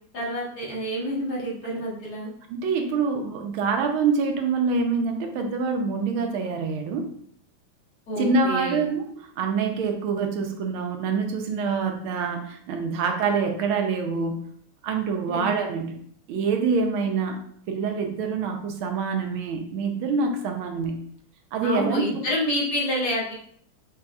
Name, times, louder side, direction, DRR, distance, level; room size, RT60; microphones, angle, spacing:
voice 1, 0.1-2.3 8.1-8.8 15.3-15.5 21.6-23.3, equal, 55° left, -5 dB, 1.5 m, -28 dB
voice 2, 2.5-7.1 8.2-14.5 14.8-16.0 16.3-17.4 17.7-21.0 21.5-22.2, right 4 dB, 80° right, 4 dB, 1.4 m, -26 dB
6.0 x 3.3 x 2.3 m, 0.62 s
omnidirectional pair, 2.3 m